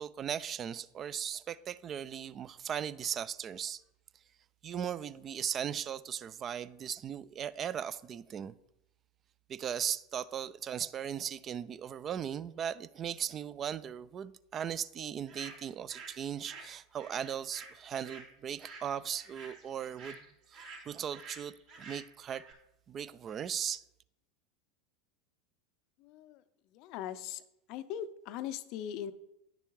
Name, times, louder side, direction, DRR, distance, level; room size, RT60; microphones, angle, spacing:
voice 1, 0.0-3.8 4.6-8.5 9.5-20.2 20.5-22.4 22.9-23.8, right 8 dB, 35° right, 0.4 m, -38 dB
sound 1, 15.3-16.2 16.4-22.5, right 4 dB, 55° right, 3.0 m, -50 dB
voice 2, 26.0-26.4 26.7-27.4 27.7-29.1, left 10 dB, 50° left, 0.5 m, -40 dB
9.7 x 6.8 x 3.1 m
figure-of-eight pair, 80°, 0 cm